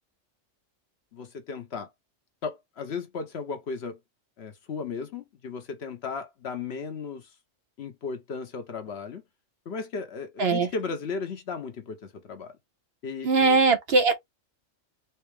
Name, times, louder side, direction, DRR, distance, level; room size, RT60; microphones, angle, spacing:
voice 1, 1.1-1.9 2.4-4.0 4.4-7.3 7.8-9.2 9.7-12.6 13.0-13.6, left 5 dB, 60° left, 1.0 m, -35 dB
voice 2, 10.4-10.7 13.2-14.2, right 4 dB, 55° right, 0.9 m, -20 dB
4.3 x 2.0 x 3.2 m
omnidirectional pair, 1.3 m